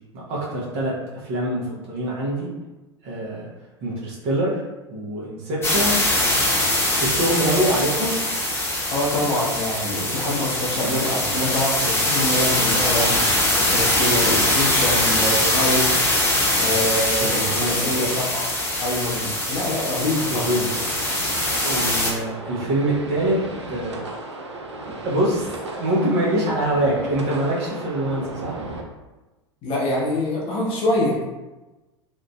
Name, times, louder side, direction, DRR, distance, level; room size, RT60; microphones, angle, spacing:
voice 1, 0.1-2.5 3.0-3.5 3.8-4.6 4.9-6.0 6.9-8.1 16.5-16.7 17.2-17.9 20.3-20.7 21.6-23.4 23.7-24.1 25.0-28.5, right 1 dB, 45° right, -5 dB, 1.0 m, -24 dB
sound 1, 5.6-22.1, left 1 dB, 15° left, 1.1 m, -22 dB
voice 2, 8.9-15.9 16.5-18.5 18.8-20.6 29.6-31.3, left 1 dB, 40° left, -4 dB, 0.8 m, -25 dB
sound 2, 20.0-28.8, right 2 dB, 85° right, 0.4 m, -35 dB
2.9 x 2.4 x 2.3 m, 1.1 s
figure-of-eight pair, 85°, 14 cm